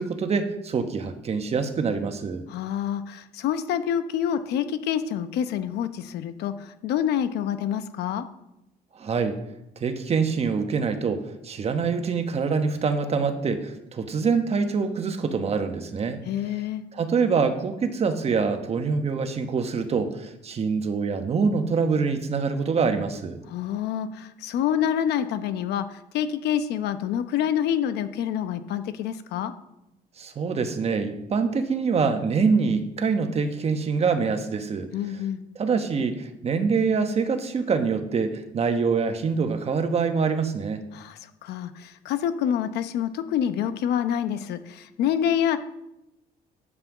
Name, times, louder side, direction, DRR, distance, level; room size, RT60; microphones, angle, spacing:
voice 1, 0.0-2.5 9.0-9.4 9.8-16.2 16.9-23.4 30.2-35.2 35.5-40.8, right 5 dB, 40° right, 7 dB, 1.2 m, -25 dB
voice 2, 2.5-8.3 16.3-16.8 23.5-29.5 34.9-35.4 40.9-45.6, left 9 dB, 80° left, 11 dB, 0.9 m, -27 dB
9.6 x 5.7 x 7.2 m, 0.87 s
cardioid pair, 110°, 17 cm